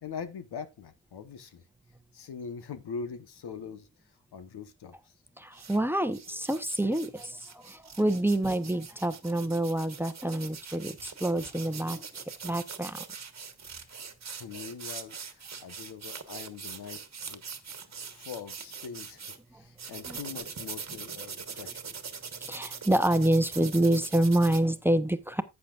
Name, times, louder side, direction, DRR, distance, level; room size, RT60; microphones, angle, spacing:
voice 1, 0.0-1.6 2.1-5.1 13.9-21.9, left 6 dB, 85° left, 1.2 m, -43 dB
voice 2, 5.4-12.1 12.4-13.0 19.5-19.6 20.1-20.2 22.4-25.4, right 1 dB, 5° right, 0.8 m, -27 dB
sound 1, 5.5-5.8 6.1-19.4 19.8-24.6, right 6 dB, 45° right, 1.4 m, -42 dB
11.5 x 8.4 x 2.4 m
cardioid pair, 80°, 38 cm